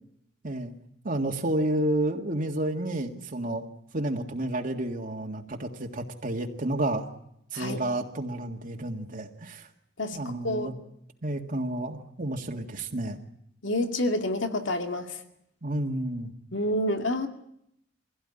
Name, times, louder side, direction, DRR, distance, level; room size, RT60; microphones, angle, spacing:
voice 1, 1.0-3.7 3.9-7.1 7.5-9.7 10.1-10.7 11.2-13.2 15.6-16.3, right 1 dB, 45° right, 2 dB, 1.8 m, -30 dB
voice 2, 10.0-10.8 13.6-15.2 16.5-17.3, left 1 dB, 70° left, 6 dB, 2.3 m, -28 dB
23.5 x 16.5 x 9.9 m, 0.74 s
head